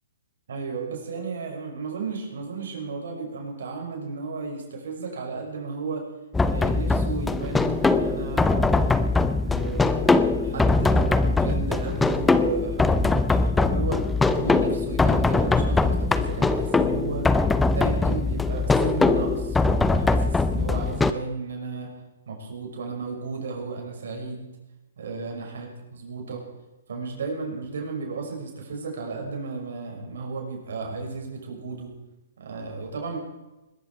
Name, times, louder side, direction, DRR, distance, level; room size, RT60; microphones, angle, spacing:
voice 1, 0.5-6.0 6.5-8.9 9.4-13.2 13.6-14.1 14.3-17.3 17.6-21.9 22.3-24.5 25.0-26.4 26.9-31.9 32.4-33.2, right 4 dB, 70° right, 1 dB, 6.0 m, -34 dB
sound 1, 6.3-21.1, left 3 dB, 5° left, 0.7 m, -22 dB
21.0 x 13.5 x 4.8 m, 1.0 s
hypercardioid pair, 145°, 0 cm